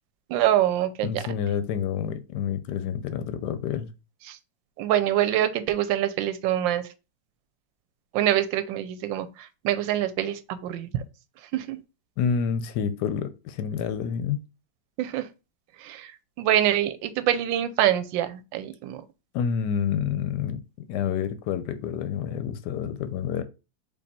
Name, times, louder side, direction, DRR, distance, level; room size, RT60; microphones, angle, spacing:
voice 1, 0.3-1.2 4.3-4.4 4.8-6.9 8.1-11.0 11.5-11.8 15.0-15.3 15.8-16.1 16.4-19.0, right 12 dB, 90° right, 1.3 m, -25 dB
voice 2, 1.0-3.9 12.2-14.4 19.3-23.4, left 7 dB, 75° left, 1.1 m, -28 dB
4.5 x 2.8 x 4.2 m
omnidirectional pair, 2.0 m